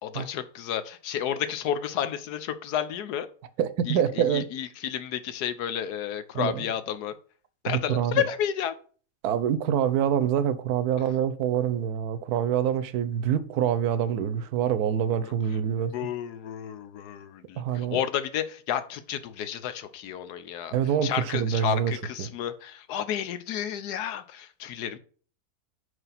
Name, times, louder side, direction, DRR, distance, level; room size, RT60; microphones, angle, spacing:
voice 1, 0.0-3.3 3.9-7.1 7.6-8.7 15.2-15.3 15.9-20.7 21.0-25.0, left 9 dB, 90° left, 1.3 m, -31 dB
voice 2, 3.6-4.5 6.3-6.7 7.7-8.2 9.2-15.9 17.6-18.0 20.7-21.9 22.2-22.3, right 9 dB, 80° right, 1.1 m, -26 dB
4.8 x 4.8 x 5.7 m
omnidirectional pair, 1.6 m